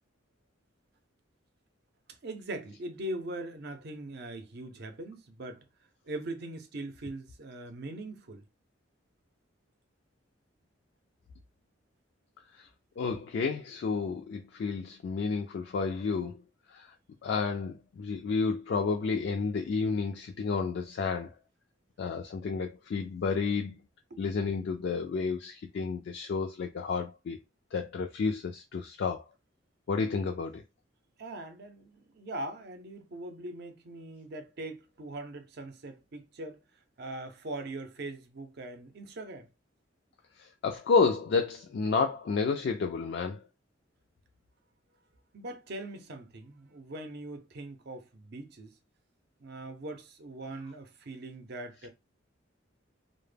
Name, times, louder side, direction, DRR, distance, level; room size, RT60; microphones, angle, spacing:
voice 1, 2.2-5.6 6.0-8.4 24.1-24.2 31.2-36.6 37.0-39.5 45.3-48.7 49.4-51.9, right 2 dB, 55° right, 0.5 m, -41 dB
voice 2, 13.0-16.4 16.7-16.9 17.2-21.3 22.0-23.8 24.2-27.4 27.7-29.3 29.9-30.6 40.4-43.4, left 5 dB, 60° left, 0.3 m, -31 dB
2.1 x 2.1 x 3.2 m
head